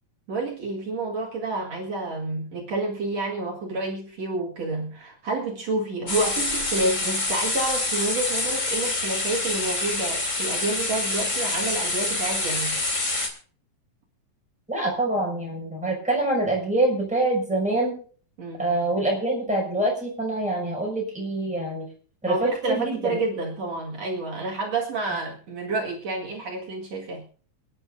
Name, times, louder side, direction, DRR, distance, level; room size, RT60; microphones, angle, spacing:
voice 1, 0.3-12.8 18.4-18.6 22.3-27.2, right 2 dB, 60° right, -2 dB, 3.1 m, -29 dB
sound 1, 6.1-13.3, left 2 dB, 25° left, 2.5 m, -26 dB
voice 2, 14.7-18.0 18.6-21.9 22.2-23.2, right 2 dB, ahead, -2 dB, 5.8 m, -25 dB
28.0 x 9.9 x 2.6 m, 0.43 s
omnidirectional pair, 3.4 m